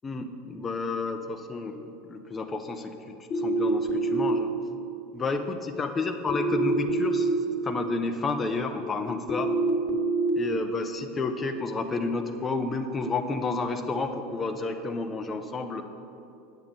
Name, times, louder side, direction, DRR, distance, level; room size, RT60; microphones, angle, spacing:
voice 1, 0.0-4.5 5.1-9.5 10.3-15.8, left 3 dB, 25° left, 6 dB, 0.6 m, -31 dB
sound 1, 3.3-4.3 6.3-7.3 9.3-10.3, right 3 dB, 40° left, 1.3 m, -26 dB
8.2 x 7.1 x 5.3 m, 2.7 s
hypercardioid pair, 85°, 0 cm